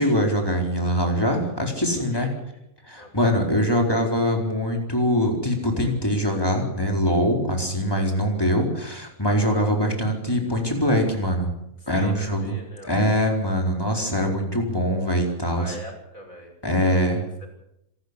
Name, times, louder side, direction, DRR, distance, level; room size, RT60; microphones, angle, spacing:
voice 1, 0.0-2.3 2.9-11.5 11.9-12.6 12.8-15.7 16.6-17.2, equal, 15° left, 1 dB, 4.6 m, -23 dB
voice 2, 2.0-2.6 3.0-3.3 11.9-12.9 15.6-16.5 16.8-17.5, equal, 70° left, 1 dB, 6.9 m, -42 dB
26.5 x 13.0 x 8.3 m, 0.81 s
omnidirectional pair, 1.5 m